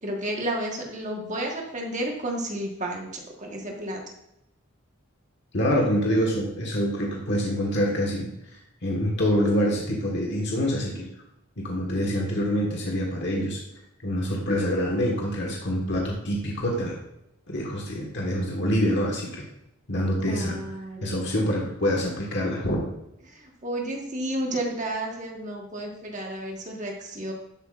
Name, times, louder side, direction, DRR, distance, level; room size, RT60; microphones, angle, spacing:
voice 1, 0.0-4.0 20.2-21.5 23.3-27.3, right 1 dB, 35° right, 0 dB, 1.4 m, -32 dB
voice 2, 5.5-11.1 11.6-13.6 14.0-17.0 17.5-19.4 19.9-20.6 21.0-22.8, equal, 50° left, -2 dB, 1.5 m, -26 dB
12.0 x 8.1 x 2.5 m, 0.84 s
head